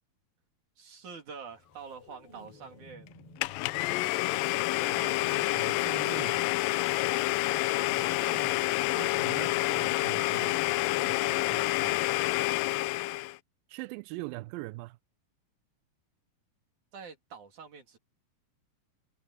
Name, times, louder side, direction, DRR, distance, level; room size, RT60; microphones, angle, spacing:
voice 1, 0.8-3.1 16.9-18.0, right 6 dB, 60° right, 4.2 m, -46 dB
sound 1, 1.2-4.4 4.7-5.1, left 1 dB, 40° left, 7.7 m, -56 dB
Domestic sounds home sounds, 3.4-13.4, left 19 dB, 85° left, 2.3 m, -28 dB
voice 2, 4.8-6.4 7.9-10.6 11.0-12.0 13.7-15.0, right 21 dB, 90° right, 2.3 m, -43 dB
omnidirectional pair, 4.0 m